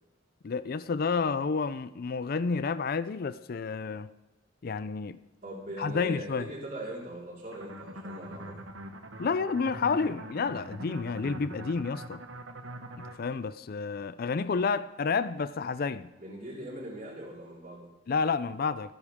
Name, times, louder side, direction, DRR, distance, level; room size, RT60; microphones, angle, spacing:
voice 1, 0.4-4.1 4.6-5.2 5.8-6.5 9.2-12.2 13.0-16.1 18.1-18.9, left 5 dB, 50° left, 0.4 m, -30 dB
voice 2, 5.4-8.6 16.2-17.9, right 1 dB, 45° right, 4.4 m, -41 dB
sound 1, 7.5-13.2, right 1 dB, 85° right, 1.4 m, -43 dB
25.5 x 9.8 x 3.6 m
head